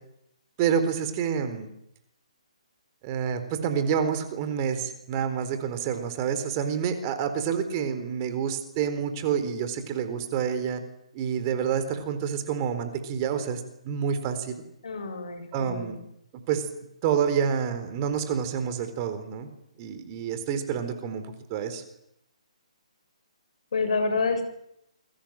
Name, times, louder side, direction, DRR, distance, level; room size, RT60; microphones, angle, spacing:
voice 1, 0.6-1.7 3.0-10.8 11.1-14.5 15.5-16.0 16.5-16.7 17.0-19.5 19.8-21.8, right 7 dB, 30° right, 9 dB, 4.2 m, -28 dB
voice 2, 14.8-16.0 23.7-24.4, left 4 dB, 60° left, 7 dB, 7.5 m, -28 dB
28.5 x 23.5 x 7.8 m, 0.77 s
figure-of-eight pair, 135°, 4 cm